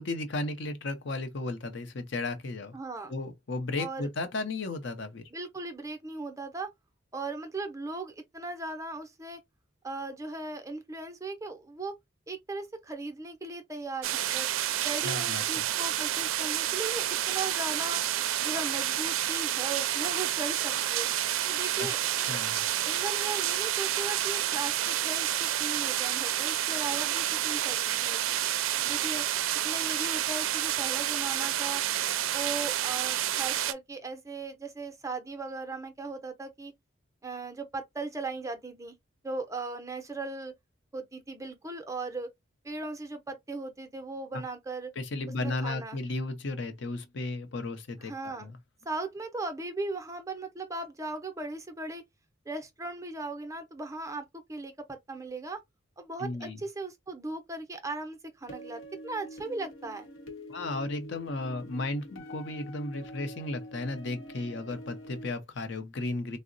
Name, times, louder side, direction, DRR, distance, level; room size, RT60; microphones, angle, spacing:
voice 1, 0.0-2.8 3.1-5.2 15.0-15.4 21.8-21.9 22.3-22.7 45.0-48.6 56.2-56.6 60.5-66.4, left 2 dB, 60° left, 0.6 m, -34 dB
voice 2, 2.7-3.1 3.8-4.1 5.3-6.7 7.1-9.4 9.8-11.9 12.3-14.5 14.8-18.0 18.4-21.1 21.5-22.0 22.8-28.4 28.8-29.2 29.5-31.8 32.3-36.7 37.2-39.0 39.2-40.5 40.9-42.3 42.6-44.9 45.4-46.0 48.0-48.5 48.9-52.0 52.5-55.6 56.0-60.1, right 3 dB, 15° right, 0.5 m, -38 dB
sound 1, 14.0-33.7, right 12 dB, 85° right, 0.4 m, -29 dB
sound 2, 58.5-65.3, equal, 85° left, 0.8 m, -45 dB
3.7 x 2.0 x 2.5 m
head